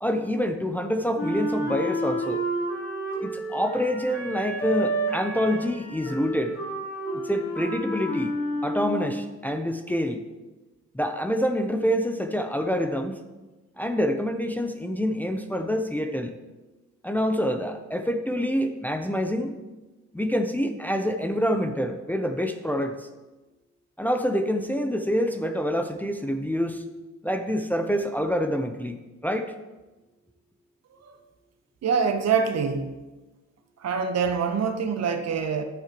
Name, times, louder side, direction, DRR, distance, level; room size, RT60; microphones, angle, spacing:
voice 1, 0.0-2.4 3.2-6.5 7.1-8.3 8.6-10.2 10.9-13.2 13.8-16.3 17.0-19.5 20.1-23.1 24.0-26.8 27.2-29.5, equal, 5° left, 5 dB, 0.7 m, -26 dB
Wind instrument woodwind instrument, 1.2-9.3, right 1 dB, 45° left, 2.7 m, -30 dB
voice 2, 31.8-33.0 33.8-35.6, right 6 dB, 60° right, 6 dB, 1.1 m, -25 dB
10.5 x 8.9 x 3.0 m, 1.1 s
cardioid pair, 90°, 30 cm